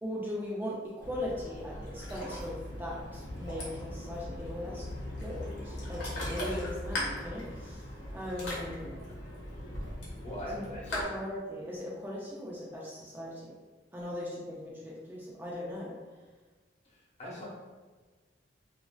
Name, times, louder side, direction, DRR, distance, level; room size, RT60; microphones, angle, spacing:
voice 1, 0.0-4.8 5.2-9.1 10.5-10.7 10.9-13.5 13.9-16.0, left 1 dB, 10° right, -5 dB, 0.3 m, -39 dB
Ocean, 1.0-11.0, left 1 dB, 85° left, 1.0 m, -39 dB
voice 2, 10.2-11.0 17.2-17.5, left 1 dB, 40° left, -6 dB, 0.9 m, -40 dB
3.0 x 2.5 x 2.2 m, 1.4 s
head